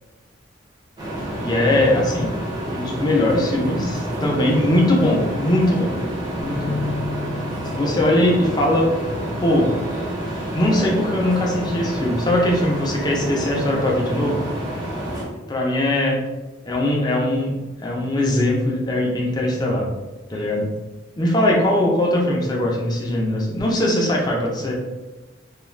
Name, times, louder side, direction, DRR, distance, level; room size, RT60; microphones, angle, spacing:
sound 1, 1.0-15.2, right 1 dB, 20° right, 0.6 m, -28 dB
voice 1, 1.4-2.3 2.7-5.9 6.3-6.8 7.7-8.9 9.4-9.7 10.5-14.4 15.5-16.2 16.7-17.5 17.8-19.9 20.3-20.7 21.2-24.7, left 1 dB, 20° left, -2 dB, 0.4 m, -20 dB
sound 2, 6.4-12.6, left 3 dB, 45° right, 0.9 m, -36 dB
2.4 x 2.2 x 3.1 m, 1.1 s
head